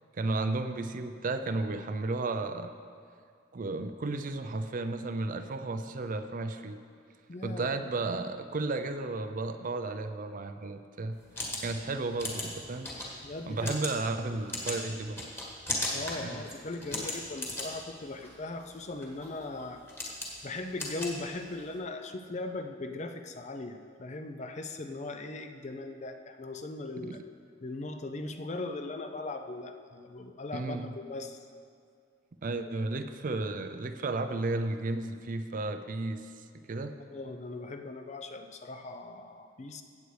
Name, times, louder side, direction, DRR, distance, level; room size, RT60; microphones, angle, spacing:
voice 1, 0.1-2.7 3.5-6.8 7.4-11.2 11.6-12.9 13.5-15.2 16.2-16.4 27.0-27.2 30.5-30.9 32.4-36.3 36.5-36.9, right 3 dB, 45° right, 8 dB, 0.5 m, -33 dB
voice 2, 7.3-7.7 13.2-13.7 15.9-20.1 20.4-27.2 27.6-31.4 37.1-39.8, left 2 dB, 35° left, 7 dB, 0.5 m, -39 dB
sound 1, 11.1-21.8, left 1 dB, 10° left, 1.5 m, -38 dB
15.5 x 8.3 x 3.2 m, 2.2 s
head